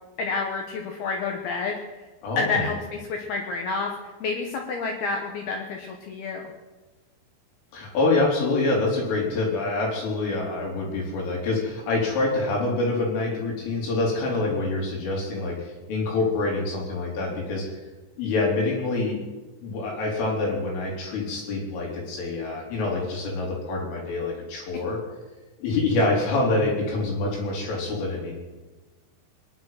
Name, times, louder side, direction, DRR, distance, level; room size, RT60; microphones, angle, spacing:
voice 1, 0.2-1.8 2.4-3.9 4.2-6.5, left 4 dB, 70° left, 2 dB, 2.7 m, -29 dB
voice 2, 2.2-2.7 7.7-17.7 18.2-19.2 19.6-25.0 25.6-28.3, left 2 dB, 90° left, -2 dB, 6.2 m, -26 dB
22.0 x 10.5 x 5.8 m, 1.2 s
omnidirectional pair, 5.5 m